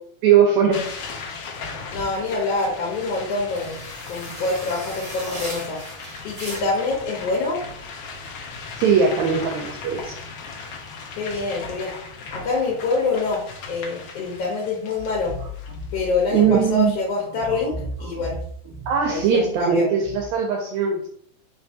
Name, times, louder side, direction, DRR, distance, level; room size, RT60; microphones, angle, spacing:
voice 1, 0.2-0.8 8.8-10.2 16.3-16.9 18.9-21.1, right 7 dB, 80° right, 0 dB, 1.7 m, -19 dB
sound 1, 0.7-16.6, left 4 dB, 90° left, 1.2 m, -38 dB
voice 2, 1.9-3.8 4.1-5.8 6.2-7.6 11.2-11.9 12.3-13.4 13.7-15.3 15.9-18.4 19.1-19.9, left 3 dB, 65° left, -2 dB, 1.6 m, -25 dB
sound 2, 2.4-6.9, equal, 25° right, 1.2 m, -38 dB
sound 3, 15.0-20.4, right 1 dB, 45° right, 1.8 m, -36 dB
4.4 x 3.3 x 2.7 m, 0.64 s
omnidirectional pair, 3.5 m